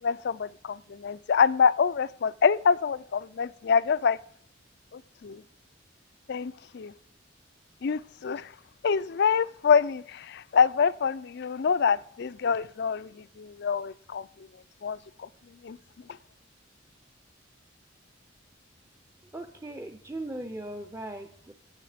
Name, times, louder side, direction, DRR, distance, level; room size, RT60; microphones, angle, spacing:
voice 1, 0.0-4.2 4.9-5.4 6.3-6.9 7.8-8.5 8.8-14.5 14.8-15.3 15.6-15.8, left 6 dB, 60° left, 0.4 m, -26 dB
voice 2, 19.3-21.5, right 1 dB, 15° right, 0.6 m, -38 dB
16.5 x 6.7 x 5.0 m
head